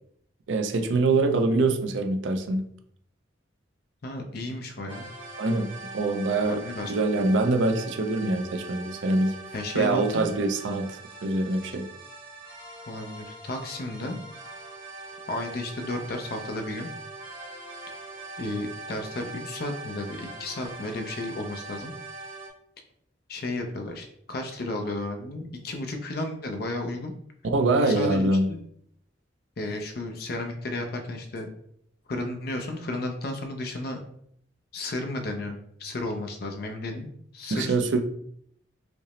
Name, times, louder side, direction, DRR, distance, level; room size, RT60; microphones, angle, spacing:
voice 1, 0.5-2.6 5.4-5.7 5.9-6.6 6.9-9.3 9.7-11.9 27.4-28.5 37.5-38.0, right 2 dB, 75° right, 7 dB, 0.4 m, -24 dB
voice 2, 4.0-5.1 6.4-7.1 9.5-10.3 12.9-14.2 15.3-16.9 18.4-21.9 23.3-27.1 27.7-28.6 29.6-31.5 32.1-34.0 34.7-37.8, left 2 dB, 50° left, 4 dB, 0.5 m, -33 dB
sound 1, 4.9-22.5, right 3 dB, 30° right, 0.9 m, -42 dB
5.0 x 2.0 x 3.0 m, 0.68 s
head